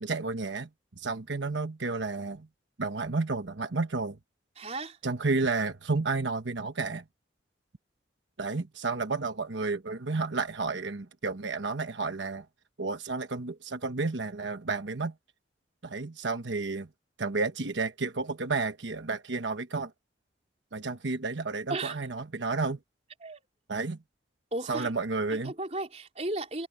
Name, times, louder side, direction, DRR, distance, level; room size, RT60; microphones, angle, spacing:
voice 1, 0.0-0.7 1.0-2.5 2.8-4.2 5.0-7.0 8.4-12.4 12.8-15.1 15.8-16.9 17.2-19.9 20.7-22.8 23.7-24.0 24.7-25.5, right 3 dB, 90° right, 1.1 m, -31 dB
voice 2, 4.6-5.0 21.7-22.1 23.2-23.4 24.5-24.9 25.3-26.7, right 2 dB, 35° right, 3.9 m, -35 dB
head